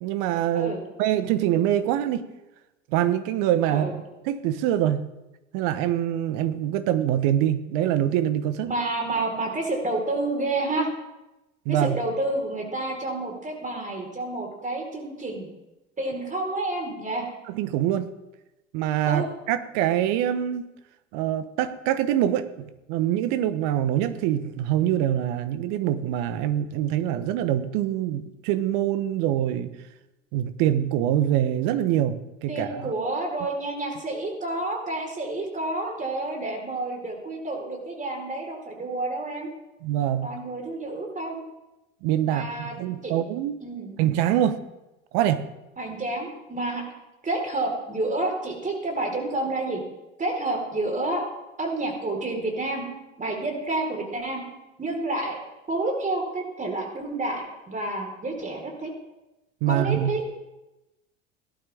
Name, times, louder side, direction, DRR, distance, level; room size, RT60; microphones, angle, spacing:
voice 1, 0.0-2.3 2.9-5.1 5.5-8.7 11.6-12.0 17.5-18.1 18.7-20.6 21.1-29.7 30.3-32.9 39.8-40.3 42.0-43.6 44.0-44.6 45.1-45.4 59.6-60.1, right 11 dB, 60° right, 12 dB, 1.2 m, -24 dB
voice 2, 8.6-10.9 11.7-15.5 16.0-17.3 19.1-19.2 32.5-39.5 40.2-41.4 42.2-42.8 43.0-43.1 43.6-44.0 45.8-46.8 47.2-49.8 50.2-51.3 51.6-52.8 53.2-54.4 54.8-55.4 55.7-58.9 59.7-60.3, right 2 dB, 20° right, 1 dB, 4.2 m, -29 dB
18.0 x 12.0 x 3.5 m, 1.0 s
hypercardioid pair, 75°, 37 cm